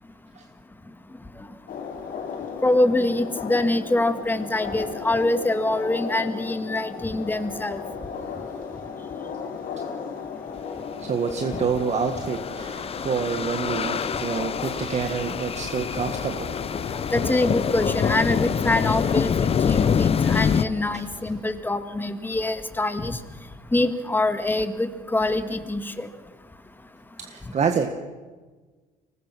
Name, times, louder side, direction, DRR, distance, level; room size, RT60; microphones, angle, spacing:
sound 1, 1.7-21.0, left 6 dB, 55° left, 3.0 m, -36 dB
voice 1, 2.6-7.8 17.1-19.3 19.7-23.2 23.7-26.1, left 2 dB, 10° left, 9 dB, 1.9 m, -24 dB
voice 2, 11.0-16.6 19.7-19.8 20.9-21.0 27.2-27.9, right 6 dB, 40° right, 6 dB, 1.6 m, -27 dB
sound 2, 11.7-20.6, left 7 dB, 35° left, 0.8 m, -26 dB
24.5 x 20.0 x 6.1 m, 1.4 s
cardioid pair, 110°, 17 cm